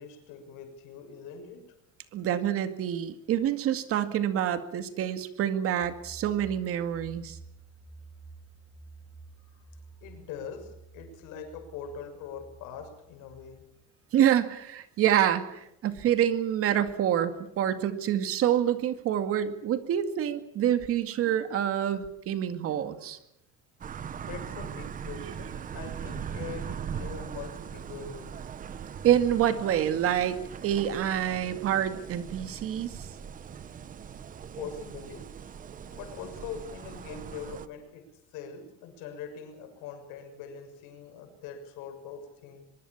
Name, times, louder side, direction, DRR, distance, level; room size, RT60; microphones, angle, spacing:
voice 1, 0.0-1.8 10.0-13.7 24.3-28.5 34.6-35.3 35.9-42.6, left 6 dB, 65° left, 7 dB, 6.5 m, -42 dB
voice 2, 2.1-7.4 14.1-23.2 25.2-25.3 29.0-30.4 30.6-33.1, right 10 dB, 40° right, 9 dB, 2.2 m, -27 dB
sound 1, 5.8-13.6, right 3 dB, ahead, 2.4 m, -51 dB
sound 2, 23.8-37.7, right 7 dB, 25° right, 1.0 m, -40 dB
23.5 x 23.0 x 7.3 m, 0.79 s
cardioid pair, 165°, 34 cm